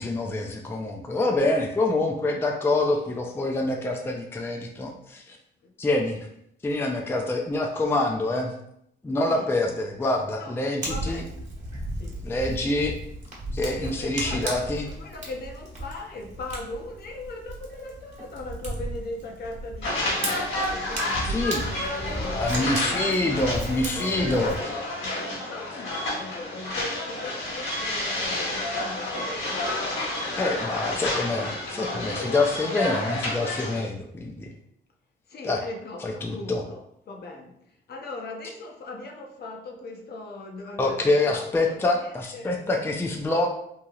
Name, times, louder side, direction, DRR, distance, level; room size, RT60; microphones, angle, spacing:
voice 1, 0.0-5.4 5.8-6.3 6.6-8.5 9.0-11.2 12.2-12.9 13.5-14.9 21.3-21.6 22.3-24.7 30.4-34.5 35.4-35.6 36.0-36.6 40.8-43.5, left 2 dB, 10° left, 2 dB, 0.4 m, -26 dB
voice 2, 6.9-7.3 9.2-9.5 10.3-11.4 11.9-12.3 13.6-24.6 24.9-31.2 32.5-32.6 35.3-43.0, left 2 dB, 55° left, 2 dB, 0.6 m, -40 dB
Fire, 10.8-24.6, right 1 dB, 35° right, 1.1 m, -35 dB
sound 1, 19.8-33.8, left 1 dB, 70° left, 1.4 m, -30 dB
3.0 x 2.7 x 2.3 m, 0.72 s
cardioid pair, 90°, 20 cm